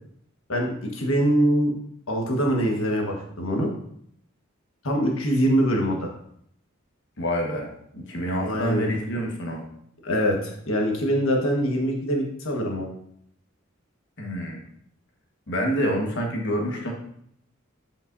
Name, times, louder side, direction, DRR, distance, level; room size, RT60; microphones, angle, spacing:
voice 1, 0.5-1.7 2.1-3.7 4.8-6.1 8.4-8.9 10.0-12.9, equal, 75° left, 1 dB, 1.4 m, -23 dB
voice 2, 7.2-9.6 14.2-14.6 15.5-16.9, equal, 60° left, 1 dB, 1.4 m, -27 dB
8.3 x 5.3 x 2.6 m, 0.69 s
head